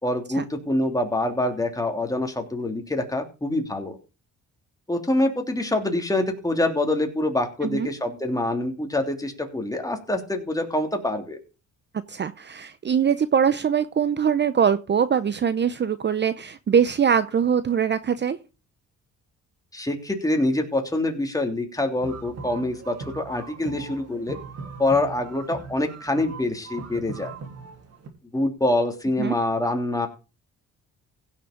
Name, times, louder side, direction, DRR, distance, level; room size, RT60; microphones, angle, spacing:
voice 1, 0.0-4.0 4.9-11.4 19.7-24.4 24.8-27.3 28.3-30.1, left 1 dB, 10° left, 3 dB, 3.1 m, -25 dB
voice 2, 12.1-18.4 29.2-29.4, right 7 dB, 35° right, 14 dB, 0.8 m, -22 dB
sound 1, 22.0-28.1, right 4 dB, 55° right, 3.3 m, -39 dB
16.0 x 6.6 x 5.1 m, 0.32 s
cardioid pair, 90°, 30 cm